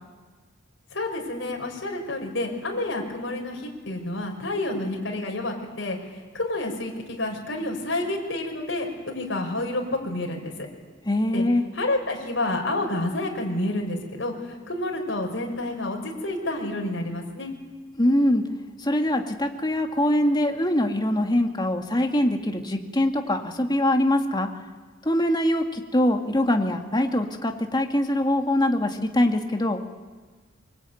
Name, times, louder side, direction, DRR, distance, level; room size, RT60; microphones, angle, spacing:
voice 1, 0.9-6.0 6.3-10.5 11.3-11.4 11.8-17.5, left 2 dB, 70° left, 1 dB, 5.6 m, -29 dB
voice 2, 11.1-11.6 18.0-18.4 18.8-24.5 25.0-29.8, left 1 dB, 25° left, 4 dB, 2.3 m, -23 dB
24.5 x 23.5 x 9.4 m, 1.4 s
head